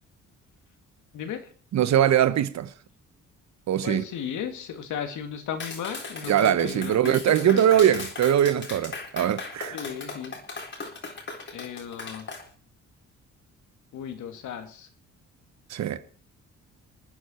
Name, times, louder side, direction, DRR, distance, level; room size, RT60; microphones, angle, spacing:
voice 1, 1.1-1.5 3.8-7.8 9.7-10.4 11.5-12.3 13.9-14.9, left 8 dB, 80° left, 2.3 m, -35 dB
voice 2, 1.7-2.7 3.7-4.0 6.3-9.8 15.7-16.0, right 10 dB, 65° right, 1.1 m, -22 dB
Clapping, 5.6-12.4, left 3 dB, 40° left, 3.9 m, -38 dB
26.5 x 9.6 x 4.4 m
cardioid pair, 90°, 30 cm